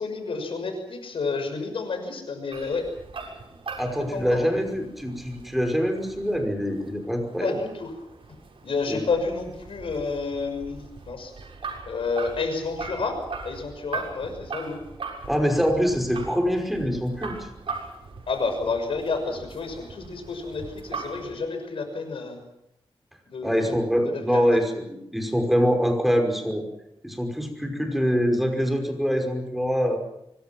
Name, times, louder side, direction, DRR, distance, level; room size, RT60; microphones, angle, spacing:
voice 1, 0.0-2.9 4.1-4.6 7.4-7.9 8.6-11.3 11.8-14.8 18.3-22.4 23.3-23.7 24.0-24.4, left 4 dB, 75° left, 6 dB, 6.2 m, -30 dB
sound 1, 2.5-21.3, right 4 dB, 70° right, 7.1 m, -40 dB
voice 2, 3.8-7.6 8.9-9.0 15.3-17.5 23.4-24.8 25.1-26.6 27.0-30.0, equal, ahead, 4 dB, 5.5 m, -24 dB
25.5 x 23.0 x 6.0 m, 0.82 s
wide cardioid pair, 90°, 9 cm